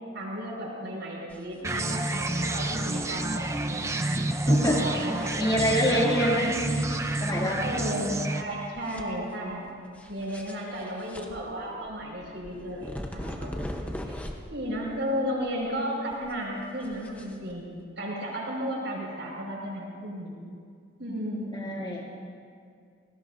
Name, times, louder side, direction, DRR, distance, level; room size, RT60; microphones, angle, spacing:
voice 1, 0.1-3.4 3.7-3.9 4.4-5.8 6.3-6.9 7.6-9.7 10.1-14.2 14.5-20.3 21.0-22.0, equal, 70° right, -3 dB, 5.4 m, -34 dB
sound 1, 1.3-1.7 1.9-2.0 2.5-3.7 4.5-5.8 6.5-7.7 8.0-8.1 8.5-9.5 9.9-14.6 14.9-17.8, equal, 10° left, 0.9 m, -41 dB
sound 2, 1.6-8.4, right 1 dB, 15° right, 0.5 m, -29 dB
voice 2, 4.5-4.8 5.4-6.5 7.2-7.6 21.5-22.0, equal, 25° left, -3 dB, 2.5 m, -25 dB
27.5 x 19.5 x 2.7 m, 2.2 s
head